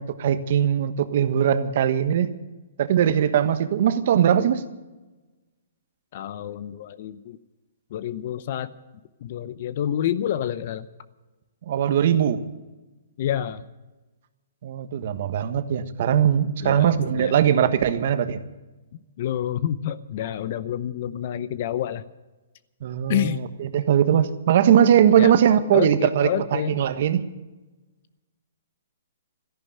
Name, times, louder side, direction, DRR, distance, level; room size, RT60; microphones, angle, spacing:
voice 1, 0.0-2.3 2.8-4.6 11.7-12.4 14.6-18.4 22.8-27.2, right 9 dB, 55° right, 11 dB, 1.3 m, -20 dB
voice 2, 6.1-7.4 7.9-8.7 9.2-10.9 13.2-13.6 16.6-17.3 19.2-22.0 23.1-23.4 25.2-25.3 25.7-26.8, left 10 dB, 45° left, 15 dB, 0.7 m, -28 dB
14.0 x 11.0 x 8.8 m, 1.1 s
hypercardioid pair, 150°, 0 cm